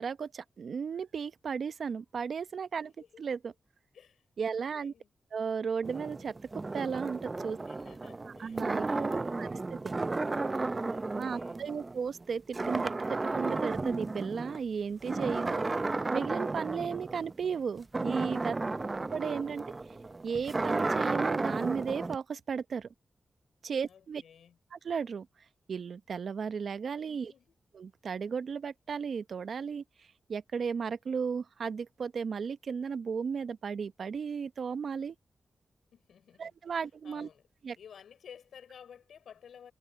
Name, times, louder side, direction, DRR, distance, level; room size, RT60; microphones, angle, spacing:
voice 1, 0.0-2.9 3.2-3.5 4.4-4.9 5.3-6.4 6.7-7.6 8.3-9.9 11.1-18.5 19.1-19.6 20.2-22.9 23.6-24.2 24.7-25.3 25.7-27.3 27.8-29.8 30.3-35.1 36.4-37.3 37.6-37.8, right 6 dB, 70° right, 0.9 m, -35 dB
voice 2, 2.8-3.2 3.9-5.1 7.5-9.6 10.9-11.6 18.6-19.1 23.9-24.6 27.1-27.6 35.9-37.5 37.8-39.7, left 8 dB, 85° left, 6.0 m, -55 dB
sound 1, 5.8-12.2 12.5-14.6 15.0-22.2, right 3 dB, 35° right, 0.6 m, -33 dB
cardioid pair, 45°, 0 cm